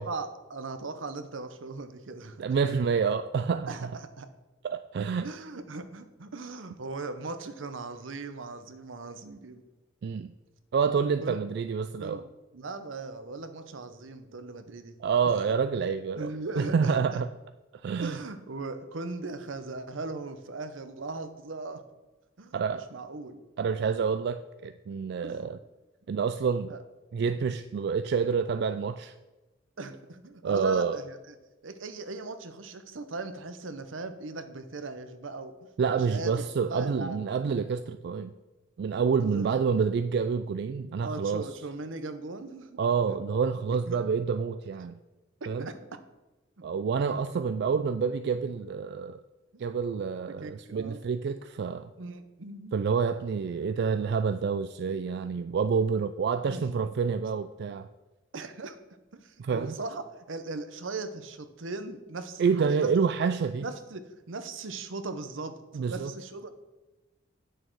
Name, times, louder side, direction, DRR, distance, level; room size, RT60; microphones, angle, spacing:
voice 1, 0.0-2.4 3.7-3.9 4.2-4.3 5.2-9.6 11.2-11.4 12.0-12.2 12.5-15.0 15.3-15.4 16.2-17.2 18.0-21.8 22.4-22.5 22.9-23.4 25.2-25.4 26.7-26.8 29.8-31.4 31.6-35.5 35.9-36.3 36.7-37.2 39.2-39.5 41.0-42.8 43.9-44.0 45.6-46.0 49.5-49.6 50.2-51.0 52.0-52.7 56.5-56.8 58.3-58.8 59.1-60.0 60.3-62.9 63.6-66.5, right 3 dB, 80° right, 10 dB, 0.8 m, -38 dB
voice 2, 2.4-3.9 4.6-5.3 10.0-10.3 10.7-12.2 15.0-17.3 17.8-18.2 22.5-22.8 23.6-25.6 26.1-26.7 27.1-29.1 30.4-31.0 35.8-38.3 38.8-41.5 42.8-45.0 45.5-45.7 46.6-49.2 49.6-51.9 52.7-57.9 59.4-59.8 62.4-63.7 65.7-66.1, right 6 dB, 60° right, 10 dB, 0.3 m, -28 dB
8.9 x 6.5 x 4.6 m, 1.1 s
head